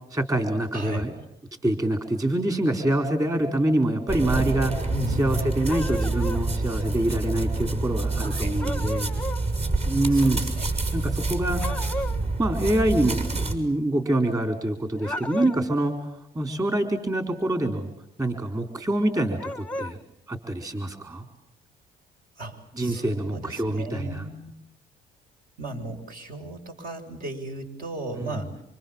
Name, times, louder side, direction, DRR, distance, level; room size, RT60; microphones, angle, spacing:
voice 1, 0.1-1.1 1.6-4.9 5.2-9.1 9.9-11.9 12.4-17.9 18.2-20.0 20.3-21.3 22.8-24.2 28.1-28.4, right 1 dB, 20° right, 6 dB, 4.6 m, -26 dB
voice 2, 0.7-1.1 4.9-5.1 8.2-8.6 10.1-10.7 22.4-24.5 25.6-28.6, right 2 dB, 60° right, 5 dB, 6.9 m, -36 dB
sound 1, 4.1-13.6, right 2 dB, 40° right, 6.0 m, -27 dB
sound 2, 5.7-6.5 8.6-9.5 11.6-12.2 15.0-15.7 19.4-20.0, left 1 dB, 5° left, 1.0 m, -33 dB
28.0 x 27.0 x 7.4 m, 0.77 s
cardioid pair, 110°, 17 cm